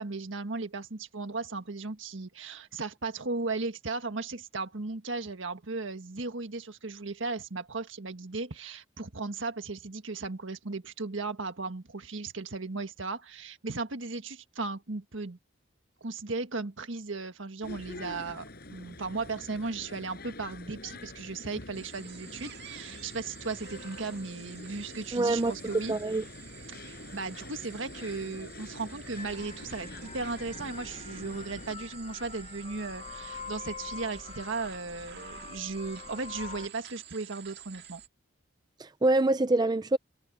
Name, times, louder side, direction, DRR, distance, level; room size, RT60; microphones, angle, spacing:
voice 1, 0.0-15.4 16.0-25.9 26.7-38.0, right 3 dB, 75° right, 1.6 m, -36 dB
sound 1, 17.6-31.8, left 2 dB, 50° left, 6.4 m, -46 dB
sound 2, 21.7-38.1, right 10 dB, 55° right, 2.0 m, -51 dB
voice 2, 25.1-25.5 25.9-26.2 38.8-40.0, right 2 dB, 20° right, 0.4 m, -25 dB
sound 3, 29.2-36.7, left 4 dB, 30° left, 0.7 m, -44 dB
head